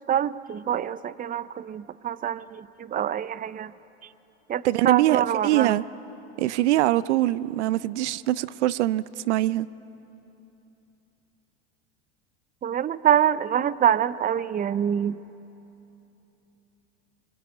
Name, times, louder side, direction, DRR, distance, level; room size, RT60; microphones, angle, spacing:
voice 1, 0.1-3.7 4.5-5.8 12.6-15.2, right 9 dB, 25° right, 17 dB, 0.7 m, -25 dB
voice 2, 4.6-5.8 6.4-9.7, right 15 dB, 75° right, 18 dB, 0.6 m, -23 dB
23.5 x 22.5 x 9.4 m, 2.9 s
hypercardioid pair, 90°, 35 cm